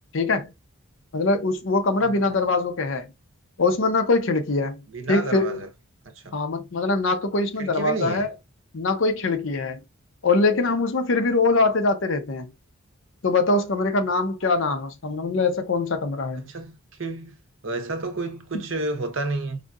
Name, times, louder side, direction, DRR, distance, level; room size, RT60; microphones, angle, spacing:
voice 1, 0.1-0.5 1.1-3.1 3.6-4.8 5.1-5.6 6.3-8.3 8.7-9.8 10.2-12.5 13.2-16.4, left 3 dB, 60° left, 0.6 m, -23 dB
voice 2, 4.9-5.7 6.0-6.3 7.6-8.3 16.3-17.3 17.6-19.6, right 2 dB, 60° right, 0.8 m, -30 dB
5.0 x 2.6 x 2.4 m
head